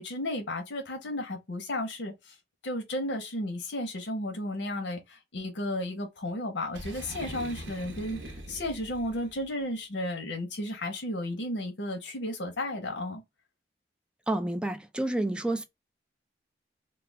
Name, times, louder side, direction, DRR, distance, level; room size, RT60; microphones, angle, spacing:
voice 1, 0.0-2.3 2.6-13.2, left 1 dB, 85° left, 0.7 m, -33 dB
Boom, 6.7-9.5, right 1 dB, 80° right, 0.8 m, -42 dB
voice 2, 14.3-15.6, right 1 dB, 5° right, 0.3 m, -29 dB
2.3 x 2.2 x 3.2 m
head